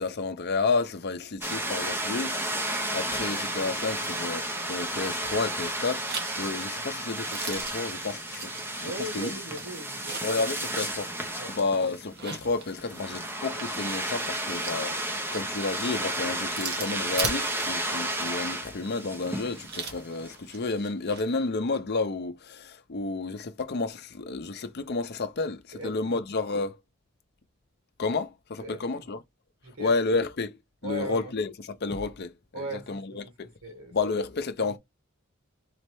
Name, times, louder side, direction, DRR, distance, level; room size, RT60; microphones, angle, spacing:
voice 1, 0.0-2.3 2.9-6.1 6.4-9.4 10.2-11.1 11.5-15.0 15.3-26.7 28.0-29.2 29.8-30.6 30.8-33.5 33.9-34.8, left 3 dB, 50° left, 0.6 m, -31 dB
sound 1, 1.4-20.4, right 1 dB, 10° right, 0.8 m, -33 dB
sound 2, 5.8-10.5 10.8-10.9 12.0-21.3, right 5 dB, 50° right, 1.2 m, -40 dB
voice 2, 8.8-10.2 11.4-11.6 25.7-26.2 28.6-28.8 29.6-29.9 30.8-31.3 32.5-33.3 33.6-33.9, equal, 85° right, 1.8 m, -38 dB
4.1 x 3.2 x 3.0 m
head